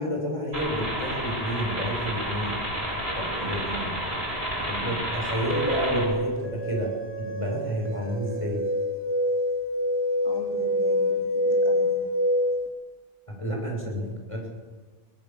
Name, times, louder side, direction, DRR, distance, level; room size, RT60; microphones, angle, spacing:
voice 1, 0.0-2.5 3.2-4.0 4.6-6.9 7.2-8.6 13.3-14.5, equal, 30° left, 0 dB, 6.9 m, -30 dB
sound 1, 0.5-6.1, right 1 dB, 85° right, 8.1 m, -30 dB
sound 2, 5.5-12.7, left 1 dB, 10° right, 3.8 m, -26 dB
voice 2, 10.2-12.1 13.6-14.2, right 1 dB, 40° right, 1 dB, 2.9 m, -42 dB
22.5 x 17.5 x 7.5 m, 1.4 s
omnidirectional pair, 1.0 m